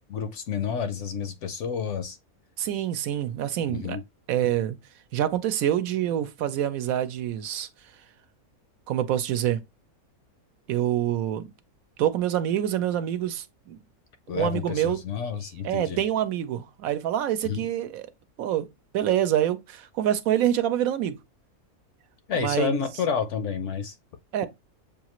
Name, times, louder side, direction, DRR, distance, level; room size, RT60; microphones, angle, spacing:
voice 1, 0.1-2.2 3.7-4.0 14.3-16.0 17.4-17.7 22.3-24.0, left 6 dB, 65° left, 0.8 m, -30 dB
voice 2, 2.6-4.0 4.3-4.8 5.1-7.7 8.9-9.6 10.7-11.5 12.0-13.8 14.3-15.0 15.6-18.1 18.4-18.7 18.9-21.2 22.3-22.8 24.3-24.5, right 11 dB, 75° right, 1.0 m, -26 dB
7.0 x 2.4 x 2.9 m
omnidirectional pair, 1.5 m